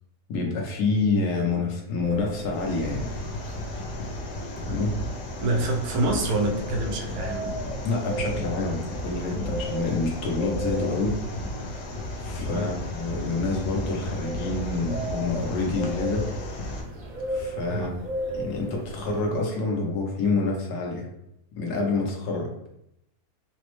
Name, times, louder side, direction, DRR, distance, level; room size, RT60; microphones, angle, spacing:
voice 1, 0.3-3.1 4.7-4.9 7.8-11.2 11.6-11.9 12.2-16.3 16.6-16.8 17.3-17.9 18.3-21.1 21.6-22.7, left 3 dB, 90° left, 0 dB, 1.4 m, -27 dB
sound 1, 2.0-19.3, right 1 dB, 50° right, 0.6 m, -36 dB
sound 2, 2.5-16.8, left 2 dB, 70° left, 1.1 m, -34 dB
voice 2, 5.4-7.5 12.5-12.7 17.7-18.0, right 2 dB, 85° right, 1 dB, 1.2 m, -27 dB
4.2 x 2.0 x 3.0 m, 0.80 s
omnidirectional pair, 1.7 m